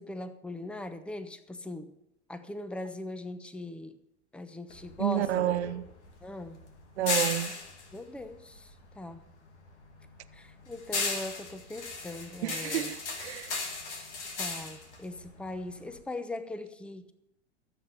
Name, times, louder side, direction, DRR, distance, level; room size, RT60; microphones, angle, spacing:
voice 1, 0.0-1.9 2.3-4.0 4.3-5.6 6.2-6.6 7.9-9.3 10.3-12.9 14.4-17.1, left 2 dB, 5° left, 0.9 m, -40 dB
sound 1, 4.7-9.2 9.5-16.0, left 4 dB, 80° left, 2.4 m, -36 dB
voice 2, 5.0-5.8 7.0-7.5 12.4-13.5, right 13 dB, 70° right, 0.8 m, -30 dB
14.0 x 8.1 x 6.9 m
hypercardioid pair, 90°, 34 cm